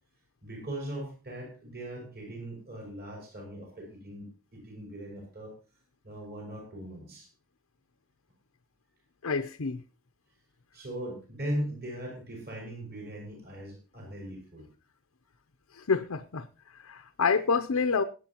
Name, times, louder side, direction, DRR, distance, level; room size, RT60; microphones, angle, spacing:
voice 1, 0.4-5.5 6.0-7.3 10.7-14.7, right 1 dB, 45° right, 5.6 m, -39 dB
voice 2, 9.2-9.8 15.7-16.5 16.8-18.0, left 5 dB, 75° left, 0.7 m, -27 dB
22.0 x 8.5 x 2.9 m
head